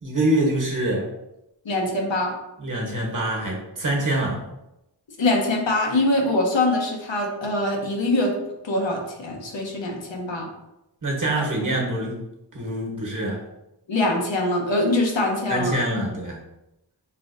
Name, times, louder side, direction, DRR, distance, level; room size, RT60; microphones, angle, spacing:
voice 1, 0.0-1.1 2.6-4.4 11.0-12.2 12.5-13.4 15.5-16.4, right 1 dB, 45° right, -2 dB, 1.2 m, -25 dB
voice 2, 1.6-2.3 5.2-8.3 8.6-10.5 13.9-15.8, left 2 dB, 90° left, 0 dB, 0.9 m, -23 dB
5.4 x 2.5 x 2.6 m, 0.91 s
wide cardioid pair, 45°, 43 cm